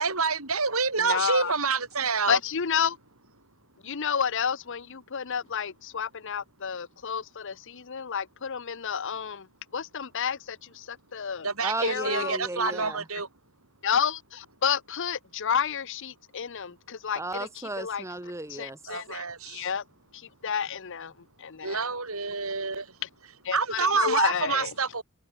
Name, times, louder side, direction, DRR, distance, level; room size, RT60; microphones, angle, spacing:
voice 1, 0.0-2.4 11.4-13.3 18.9-19.7 21.6-22.9 23.5-25.0, right 4 dB, 75° right, 7.1 m, -27 dB
voice 2, 1.0-1.5 2.3-3.0 3.8-9.5 9.7-11.5 11.8-12.4 12.6-12.7 13.8-17.2 17.8-18.0 18.5-19.8 20.4-21.1 21.4-21.8 23.4-24.7, left 7 dB, 60° left, 0.8 m, -30 dB
voice 3, 11.6-13.0 17.1-18.8, right 2 dB, 15° right, 1.4 m, -34 dB
open air
head